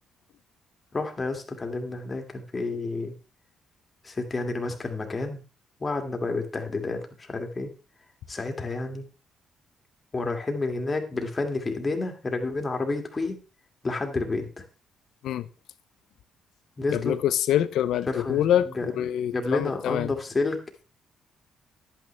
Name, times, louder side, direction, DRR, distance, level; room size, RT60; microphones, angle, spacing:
voice 1, 0.9-3.2 4.0-5.4 5.8-7.7 8.3-9.1 10.1-13.4 13.8-14.6 16.8-17.2 18.1-18.4 18.7-18.9 19.3-20.6, left 3 dB, 30° left, 2.1 m, -30 dB
voice 2, 16.9-20.1, left 11 dB, 80° left, 0.6 m, -25 dB
10.5 x 8.8 x 3.3 m
cardioid pair, 90°, 0 cm